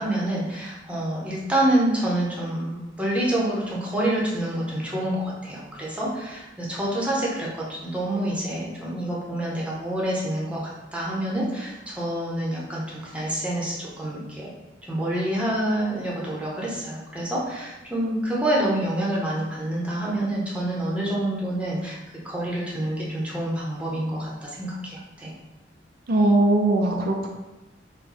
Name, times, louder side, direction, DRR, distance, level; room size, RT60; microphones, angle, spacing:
voice 1, 0.0-14.5 14.9-22.0 22.2-25.3, right 1 dB, 5° right, -5 dB, 0.9 m, -27 dB
voice 2, 26.1-27.3, right 2 dB, 55° right, 1 dB, 0.4 m, -20 dB
4.3 x 2.2 x 4.1 m, 1.0 s
head